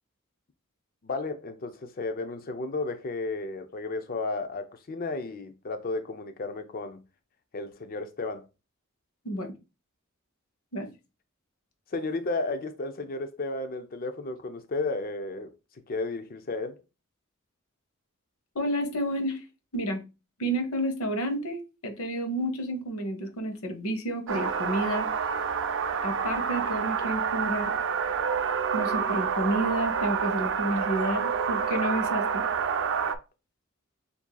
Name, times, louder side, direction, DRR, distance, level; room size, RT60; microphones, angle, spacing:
voice 1, 1.0-7.0 7.5-8.4 11.9-15.5 15.9-16.8, left 3 dB, 45° left, 0.5 m, -33 dB
voice 2, 18.5-19.4 19.7-20.0 20.4-25.1 26.0-27.7 28.7-32.4, right 1 dB, 90° left, 1.1 m, -30 dB
sound 1, 24.3-33.1, right 6 dB, 65° right, 0.5 m, -28 dB
7.1 x 2.7 x 2.3 m
head